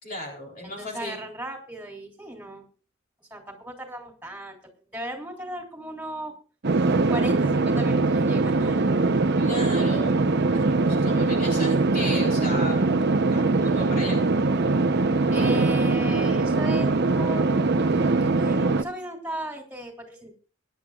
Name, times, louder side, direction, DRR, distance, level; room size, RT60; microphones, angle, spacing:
voice 1, 0.0-1.2 9.4-10.2 10.5-12.8 13.3-14.2, left 1 dB, 40° left, -1 dB, 3.8 m, -35 dB
voice 2, 0.6-2.6 3.3-4.6 4.9-6.3 7.1-8.8 11.1-11.4 15.3-17.6 18.2-20.3, right 1 dB, 5° right, 2 dB, 3.3 m, -36 dB
sound 1, 6.6-18.8, right 3 dB, 55° right, 0.8 m, -22 dB
23.0 x 10.5 x 2.4 m, 0.36 s
head